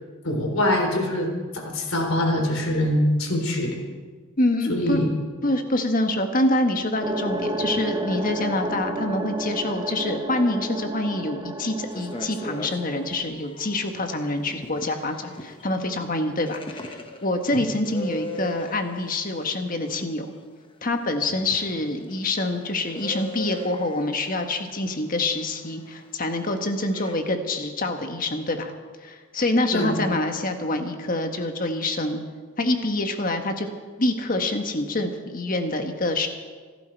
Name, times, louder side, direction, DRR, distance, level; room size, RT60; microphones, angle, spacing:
voice 1, 0.2-1.3 1.5-3.8 4.7-5.1 29.7-30.0, left 1 dB, 75° left, 2 dB, 3.8 m, -23 dB
voice 2, 4.4-5.0 5.4-20.3 20.8-28.7 29.0-32.2 32.6-33.7 34.0-36.3, left 2 dB, 40° left, 5 dB, 1.5 m, -26 dB
sound 1, 7.0-13.2, right 1 dB, 20° right, 1.1 m, -31 dB
sound 2, 11.9-12.8 13.3-13.9 14.5-17.3 17.6-18.9 19.8-20.1 21.4-24.1 24.7-24.8 26.9-27.1, left 1 dB, 25° left, 1.1 m, -37 dB
26.5 x 12.0 x 4.6 m, 1.5 s
head